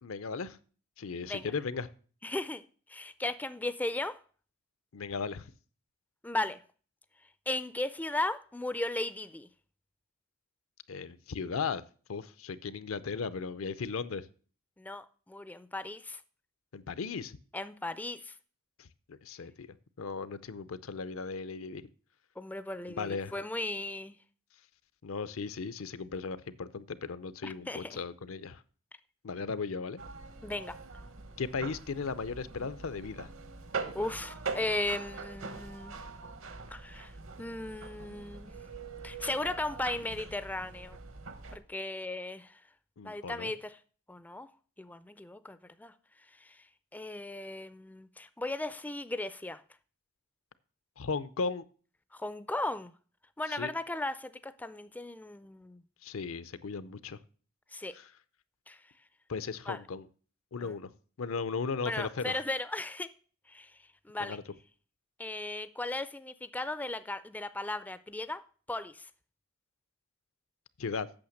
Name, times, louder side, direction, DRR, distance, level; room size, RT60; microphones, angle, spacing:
voice 1, 0.0-0.6 1.0-1.9 4.9-5.5 10.9-11.8 12.1-14.3 16.7-17.4 18.8-19.7 20.0-21.9 23.0-23.3 25.0-28.6 29.2-30.0 31.4-33.3 43.0-43.5 51.0-51.6 53.5-53.7 56.0-57.2 57.9-58.1 59.3-60.1 60.5-60.9 61.2-62.4 64.2-64.4 70.8-71.1, left 5 dB, 75° left, 0.6 m, -36 dB
voice 2, 2.2-2.6 2.9-4.2 6.2-6.6 7.5-9.5 14.8-16.2 17.5-18.4 22.4-24.2 27.4-28.0 30.4-30.8 33.9-36.0 36.7-37.1 37.4-38.6 39.0-41.0 41.5-42.6 43.0-43.8 44.1-44.5 44.8-45.9 46.3-46.7 46.9-49.6 52.1-52.9 53.4-55.8 57.7-58.0 58.7-58.8 59.7-59.8 60.6-60.8 61.8-63.1 63.5-64.4 65.2-68.4 68.7-69.1, left 2 dB, 10° left, 0.3 m, -36 dB
sound 1, 30.0-41.6, right 4 dB, 65° right, 1.1 m, -43 dB
8.7 x 6.5 x 6.4 m
head